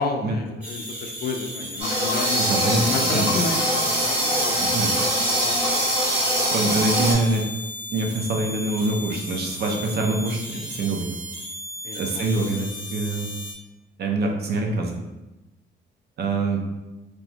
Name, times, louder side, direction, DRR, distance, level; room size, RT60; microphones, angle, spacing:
voice 1, 0.0-4.6 5.1-5.8 11.8-12.3, left 4 dB, 50° left, 4 dB, 0.4 m, -31 dB
sound 1, 0.6-13.5, left 1 dB, 5° right, 0.8 m, -36 dB
sound 2, 1.8-7.1, equal, 30° right, 1.3 m, -23 dB
voice 2, 2.3-3.3 4.6-4.9 6.5-7.5 7.9-11.1 11.9-13.3 14.0-15.0 16.2-16.6, right 2 dB, 55° right, 1 dB, 0.5 m, -25 dB
2.9 x 2.1 x 2.8 m, 1.0 s
cardioid pair, 90°, 20 cm